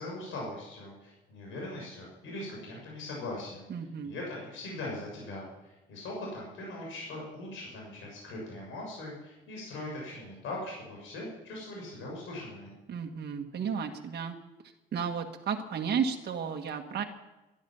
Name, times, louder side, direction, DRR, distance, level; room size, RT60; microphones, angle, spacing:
voice 1, 0.0-3.7 4.0-12.7, left 2 dB, 85° left, -3 dB, 6.4 m, -40 dB
voice 2, 3.7-4.1 12.9-14.4 14.9-17.0, right 6 dB, 55° right, 2 dB, 1.6 m, -33 dB
12.5 x 11.5 x 9.4 m, 1.0 s
cardioid pair, 90°, 20 cm